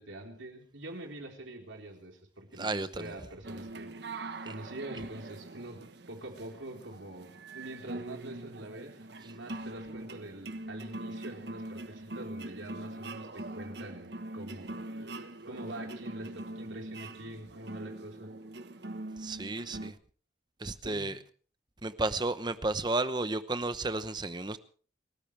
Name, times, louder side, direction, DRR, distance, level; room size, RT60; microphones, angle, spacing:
voice 1, 0.0-18.3 20.8-21.2, right 1 dB, 80° right, 4.1 m, -45 dB
voice 2, 2.5-3.1 19.2-20.0 20.6-21.2 21.8-24.6, right 2 dB, 20° right, 0.9 m, -33 dB
sound 1, 3.4-19.9, right 2 dB, 55° right, 1.2 m, -42 dB
29.5 x 14.0 x 3.3 m
head